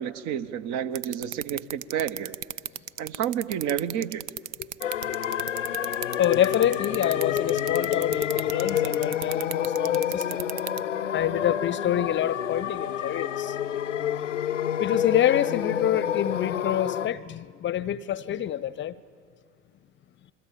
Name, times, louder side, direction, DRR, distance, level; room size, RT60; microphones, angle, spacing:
voice 1, 0.0-2.4 3.0-4.3, right 9 dB, 50° right, 1.2 m, -30 dB
sound 1, 0.9-10.8, right 13 dB, 65° right, 0.8 m, -33 dB
sound 2, 4.8-17.1, left 10 dB, 90° left, 0.7 m, -28 dB
voice 2, 6.2-10.4 11.1-13.6 14.8-19.0, left 11 dB, 30° left, 0.7 m, -27 dB
28.5 x 22.5 x 8.7 m
hypercardioid pair, 75°, 36 cm